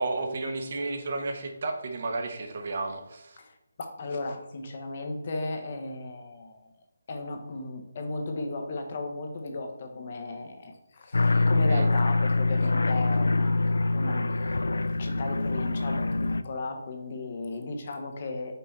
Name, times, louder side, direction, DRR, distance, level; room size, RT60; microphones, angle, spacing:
voice 1, 0.0-3.4 11.7-11.9, right 3 dB, 50° right, 4 dB, 1.1 m, -32 dB
voice 2, 3.4-6.7 7.1-14.3 15.0-18.5, left 2 dB, 45° left, 4 dB, 1.0 m, -35 dB
sound 1, 11.1-16.4, left 2 dB, 80° left, 0.3 m, -25 dB
5.5 x 4.4 x 4.2 m, 0.97 s
figure-of-eight pair, 160°, 0 cm